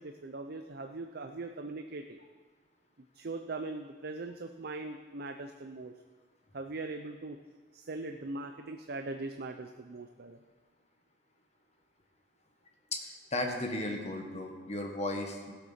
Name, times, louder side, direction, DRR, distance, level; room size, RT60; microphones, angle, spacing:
voice 1, 0.0-2.2 3.1-5.9 6.5-7.4 7.7-10.4, right 3 dB, 55° right, 5 dB, 0.6 m, -40 dB
voice 2, 12.9-15.5, left 2 dB, 35° left, 2 dB, 1.6 m, -35 dB
16.0 x 8.0 x 5.8 m, 1.5 s
head